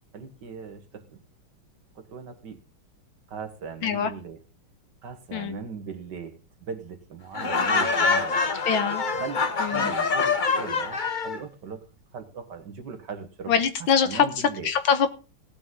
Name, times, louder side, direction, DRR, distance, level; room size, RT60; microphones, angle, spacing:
voice 1, 0.1-1.2 2.0-2.6 3.3-4.4 5.0-8.5 9.1-11.9 12.1-13.5 14.0-14.7, right 6 dB, 55° right, 8 dB, 1.9 m, -39 dB
Laughter, 7.3-11.4, left 4 dB, 45° left, 0.6 m, -25 dB
voice 2, 8.7-9.0 9.6-9.9 13.5-15.1, left 7 dB, 70° left, 10 dB, 2.0 m, -24 dB
17.5 x 8.8 x 3.8 m, 0.32 s
omnidirectional pair, 2.3 m